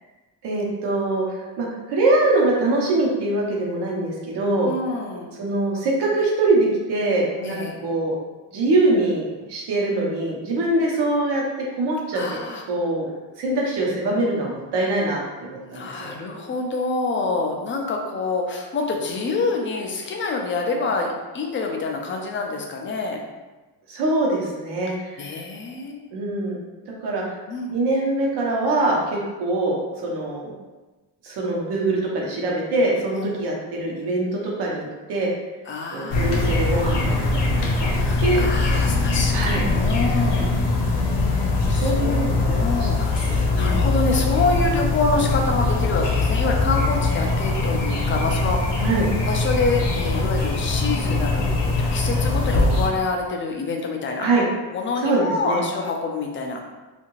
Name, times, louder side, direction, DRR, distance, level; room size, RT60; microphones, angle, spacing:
voice 1, 0.4-4.7 5.4-8.1 8.5-11.4 11.7-12.2 12.7-13.1 13.4-16.1 23.9-25.3 26.1-26.6 26.9-27.2 27.7-30.5 31.2-35.3 35.9-37.4 37.8-37.9 38.2-38.4 39.3-39.7 41.7-43.9 48.8-49.1 54.2-54.4 55.0-55.6, right 2 dB, 80° right, -3 dB, 0.9 m, -23 dB
voice 2, 4.6-5.3 7.4-7.8 12.1-12.6 15.6-23.2 25.2-26.1 27.5-27.7 33.1-33.3 35.7-37.1 37.9-40.5 41.7-48.9 49.3-54.3 54.7-56.6, left 3 dB, 30° left, 1 dB, 0.4 m, -27 dB
sound 1, 36.1-52.9, left 3 dB, 90° left, 0.7 m, -22 dB
2.7 x 2.5 x 2.9 m, 1.2 s
cardioid pair, 155°, 40 cm